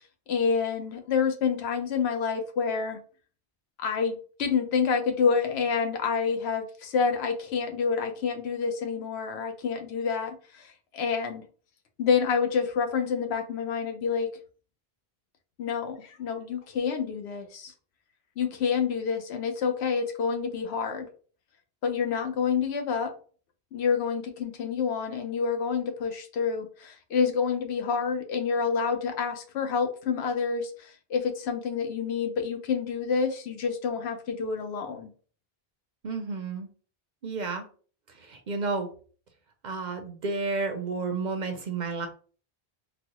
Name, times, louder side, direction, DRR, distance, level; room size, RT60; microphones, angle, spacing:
voice 1, 0.3-3.0 3.8-11.4 12.0-14.3 15.6-17.7 18.4-21.1 21.8-23.1 23.7-35.1, left 6 dB, 90° left, 5 dB, 0.9 m, -28 dB
voice 2, 36.0-36.7 37.2-37.6 38.2-38.9 39.6-42.1, right 4 dB, 55° right, 6 dB, 0.6 m, -31 dB
4.0 x 2.1 x 2.9 m, 0.41 s
omnidirectional pair, 1.1 m